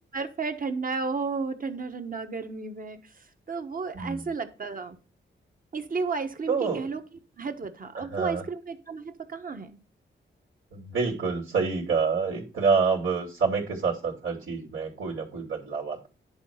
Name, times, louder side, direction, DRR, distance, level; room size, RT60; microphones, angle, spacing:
voice 1, 0.1-3.0 3.5-5.0 5.7-7.0 7.4-9.8, right 4 dB, 45° right, 6 dB, 1.3 m, -32 dB
voice 2, 3.9-4.3 6.5-6.9 7.9-8.4 10.7-16.1, right 5 dB, 80° right, -3 dB, 2.9 m, -27 dB
10.5 x 4.2 x 5.7 m, 0.33 s
cardioid pair, 80°, 20 cm